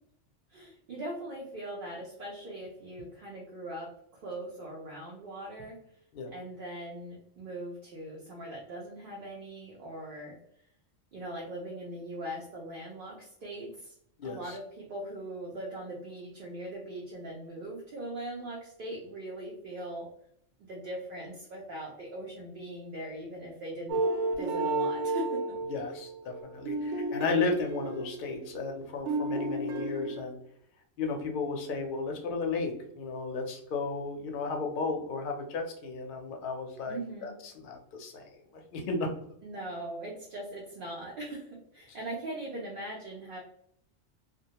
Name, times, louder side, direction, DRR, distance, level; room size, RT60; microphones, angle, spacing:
voice 1, 0.5-5.8 6.3-10.4 11.1-13.9 14.2-20.1 20.7-24.0 24.3-25.4 36.9-37.3 39.4-43.4, right 1 dB, 55° right, -3 dB, 0.6 m, -40 dB
voice 2, 14.2-14.6 25.7-30.4 31.0-38.2 38.5-39.1, left 4 dB, 60° left, 2 dB, 0.6 m, -34 dB
sound 1, 23.9-28.8 29.1-30.2, right 2 dB, 80° right, 0.9 m, -32 dB
2.2 x 2.1 x 2.8 m, 0.69 s
omnidirectional pair, 1.2 m